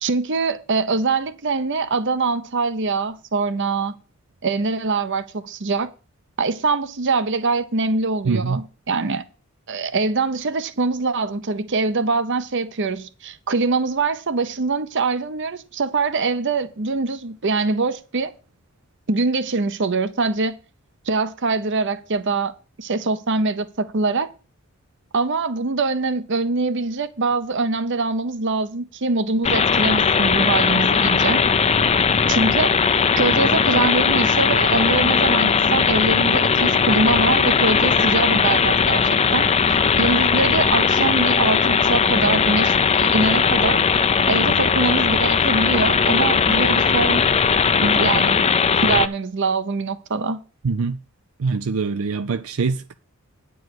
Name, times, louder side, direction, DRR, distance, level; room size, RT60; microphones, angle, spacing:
voice 1, 0.0-3.9 4.4-5.9 6.4-9.2 9.7-18.3 19.1-20.6 21.1-22.5 22.8-24.3 25.1-31.4 32.3-32.8 33.2-43.8 44.3-47.3 47.8-48.5 48.8-50.4, right 3 dB, 60° right, 0.8 m, -23 dB
voice 2, 8.3-8.6 50.6-51.0 51.4-52.9, right 4 dB, 85° right, 0.5 m, -23 dB
sound 1, 29.4-49.1, left 6 dB, 30° left, 0.5 m, -18 dB
9.4 x 4.7 x 7.8 m
head